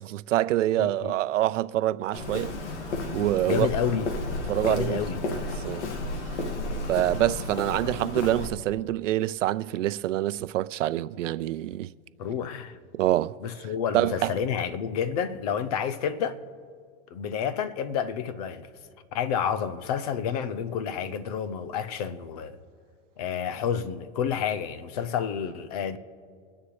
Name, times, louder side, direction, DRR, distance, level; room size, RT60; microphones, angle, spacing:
voice 1, 0.0-2.5 3.1-3.7 4.5-5.9 6.9-11.9 12.9-13.4 13.9-14.3, right 14 dB, 85° right, 0.6 m, -26 dB
voice 2, 0.8-1.1 3.4-4.1 4.6-5.2 12.2-12.8 13.4-16.4 17.1-18.7 19.1-22.6 23.2-26.0, left 8 dB, 35° left, 0.6 m, -29 dB
Walk footsteps, 2.1-8.5, left 2 dB, 70° left, 2.0 m, -32 dB
24.0 x 9.9 x 3.2 m
supercardioid pair, 165°, 36 cm